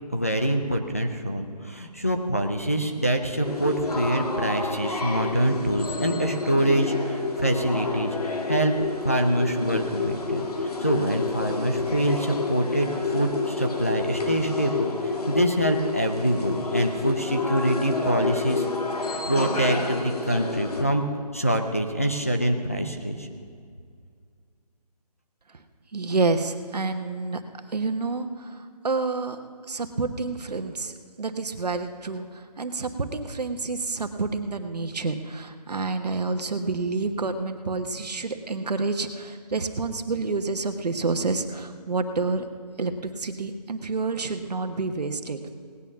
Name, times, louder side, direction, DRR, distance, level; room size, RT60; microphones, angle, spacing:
voice 1, 0.1-8.7 9.0-18.6 19.3-23.3, right 1 dB, 20° left, 3 dB, 0.5 m, -25 dB
sound 1, 3.4-20.8, left 3 dB, 65° left, 1.9 m, -29 dB
voice 2, 25.9-27.4 27.7-29.4 29.7-42.4 42.8-45.5, right 3 dB, 70° right, 7 dB, 1.2 m, -28 dB
18.0 x 9.6 x 5.9 m, 2.2 s
hypercardioid pair, 175°, 21 cm